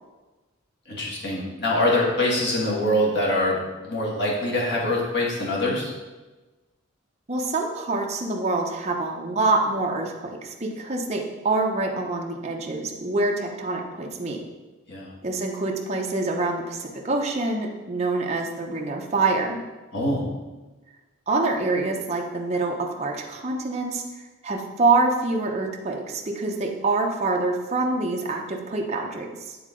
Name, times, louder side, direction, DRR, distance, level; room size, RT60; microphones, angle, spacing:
voice 1, 0.9-3.6 3.8-5.9 14.9-15.1 19.9-20.2, left 1 dB, 50° left, -4 dB, 1.6 m, -24 dB
voice 2, 7.3-14.4 15.2-19.6 21.3-29.6, right 3 dB, 30° right, 0 dB, 0.7 m, -26 dB
9.4 x 3.7 x 3.8 m, 1.2 s
head